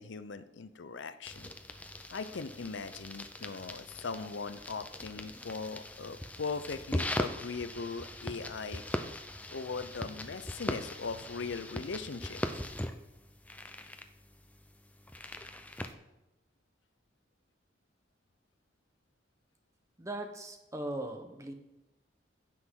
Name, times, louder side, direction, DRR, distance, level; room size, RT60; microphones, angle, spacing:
voice 1, 0.0-1.5 2.1-8.8 9.5-12.6, left 4 dB, 80° left, 11 dB, 0.6 m, -39 dB
sound 1, 1.3-15.9, left 1 dB, 10° left, 0.5 m, -40 dB
voice 2, 20.0-21.5, right 1 dB, 15° right, 5 dB, 1.1 m, -39 dB
16.0 x 6.1 x 3.8 m, 0.99 s
head